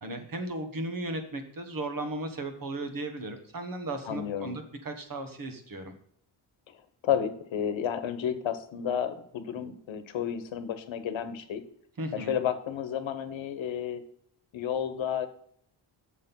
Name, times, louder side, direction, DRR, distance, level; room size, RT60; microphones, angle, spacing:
voice 1, 0.0-5.9 12.0-12.4, right 2 dB, 45° right, 7 dB, 1.5 m, -36 dB
voice 2, 4.1-4.5 7.0-11.6 12.1-14.0 14.5-15.3, left 9 dB, 75° left, 10 dB, 1.1 m, -31 dB
7.5 x 6.5 x 5.5 m, 0.66 s
wide cardioid pair, 125°, 47 cm